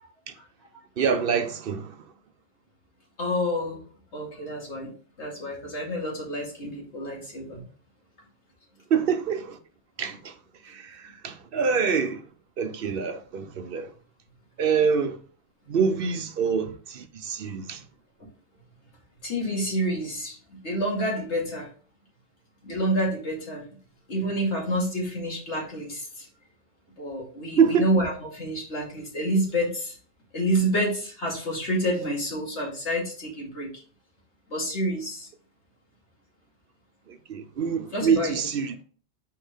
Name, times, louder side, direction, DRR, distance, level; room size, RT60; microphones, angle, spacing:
voice 1, 1.0-1.9 8.9-9.6 10.0-10.3 10.7-12.2 12.6-13.9 14.6-15.2 15.7-17.8 27.6-27.8 37.1-38.7, right 6 dB, 60° right, 0.8 m, -25 dB
voice 2, 3.2-3.8 4.1-7.6 19.2-21.7 22.6-23.6 24.1-26.3 27.0-30.0 30.3-33.7 34.5-35.3 37.9-38.4, equal, 80° left, 2.5 m, -28 dB
6.1 x 4.5 x 3.5 m
omnidirectional pair, 1.2 m